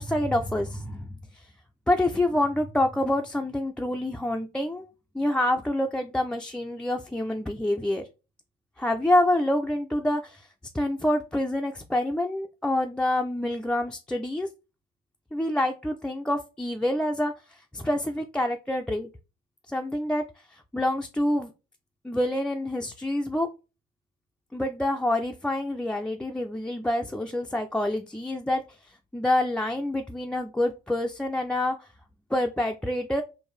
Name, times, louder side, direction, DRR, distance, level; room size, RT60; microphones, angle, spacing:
voice 1, 0.0-1.5 1.9-4.9 5.1-8.0 8.8-10.5 10.7-14.5 15.3-19.1 19.7-20.2 20.5-21.5 22.0-23.5 24.5-28.6 28.9-31.9 32.3-33.2, left 1 dB, 5° left, 2 dB, 0.3 m, -27 dB
4.5 x 2.6 x 3.1 m, 0.30 s
cardioid pair, 110°, 17 cm